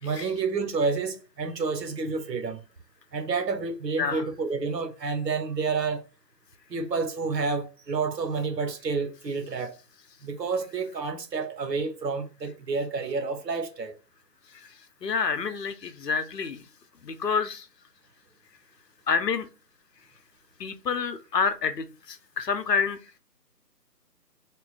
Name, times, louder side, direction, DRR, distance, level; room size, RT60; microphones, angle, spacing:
voice 1, 0.0-2.6 3.1-6.0 6.7-9.8 10.2-14.0, right 4 dB, 85° right, 1.0 m, -29 dB
voice 2, 14.5-16.7 17.0-17.7 19.1-19.5 20.6-23.2, left 5 dB, 75° left, 0.8 m, -28 dB
3.7 x 2.2 x 4.1 m
hypercardioid pair, 175°, 49 cm